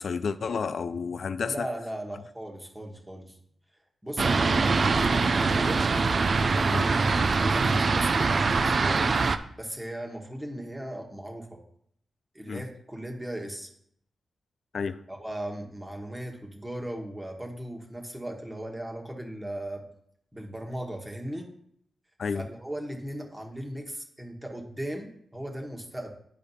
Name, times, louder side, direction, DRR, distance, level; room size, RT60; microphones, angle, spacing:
voice 1, 0.0-1.7 6.7-6.9 12.5-12.6 14.7-15.0 22.2-22.5, left 5 dB, 65° left, 0.4 m, -31 dB
voice 2, 1.4-3.4 4.0-5.8 6.8-9.2 9.6-11.6 12.3-13.7 15.1-19.8 20.3-21.5 22.3-26.1, right 1 dB, 15° right, 1.4 m, -37 dB
Fixed-wing aircraft airplane, 4.2-9.4, right 4 dB, 55° right, 0.4 m, -23 dB
10.5 x 5.0 x 2.8 m
cardioid pair, 75°, 0 cm